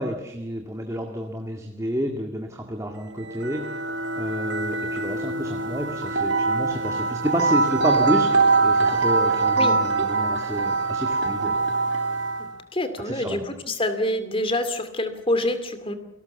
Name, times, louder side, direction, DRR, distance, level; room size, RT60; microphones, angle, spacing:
voice 1, 0.0-3.8 4.2-11.6 13.0-13.4, equal, 15° right, 3 dB, 1.9 m, -30 dB
sound 1, 3.1-12.6, right 3 dB, 60° right, 3.1 m, -23 dB
voice 2, 12.4-15.9, left 1 dB, 25° left, 10 dB, 2.4 m, -26 dB
29.0 x 19.0 x 7.0 m, 0.85 s
head